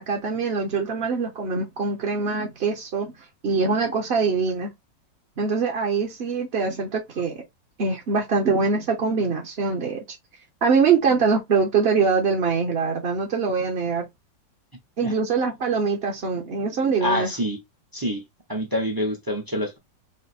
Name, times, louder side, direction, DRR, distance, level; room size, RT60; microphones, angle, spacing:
voice 1, 0.0-3.1 3.4-4.7 5.4-7.4 7.8-10.2 10.6-14.1 15.0-17.3, right 5 dB, 50° right, 0.7 m, -23 dB
voice 2, 17.0-17.6 17.9-18.2 18.5-19.8, left 1 dB, 35° right, 0.3 m, -26 dB
4.9 x 2.1 x 4.1 m
omnidirectional pair, 2.0 m